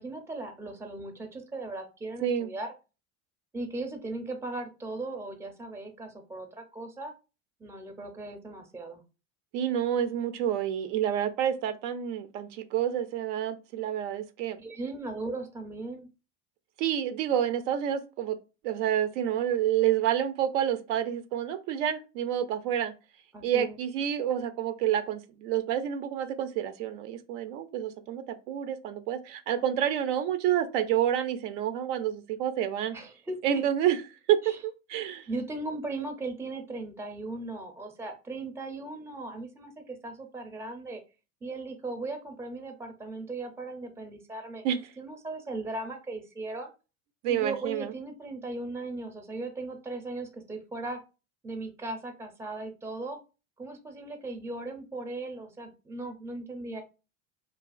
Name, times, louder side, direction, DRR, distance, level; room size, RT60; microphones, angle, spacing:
voice 1, 0.0-2.7 3.5-7.1 7.6-9.0 14.6-16.1 23.3-23.8 32.9-33.6 34.4-34.6 35.3-41.0 41.4-46.7 47.3-51.0 51.4-53.2 53.6-56.8, right 2 dB, 5° right, 6 dB, 0.5 m, -38 dB
voice 2, 2.2-2.5 9.5-14.6 16.8-18.4 18.6-22.9 23.4-33.0 33.4-34.0 34.3-35.3 44.6-44.8 47.2-47.9, right 10 dB, 70° right, 10 dB, 0.5 m, -28 dB
2.3 x 2.3 x 2.3 m, 0.30 s
hypercardioid pair, 85°, 38 cm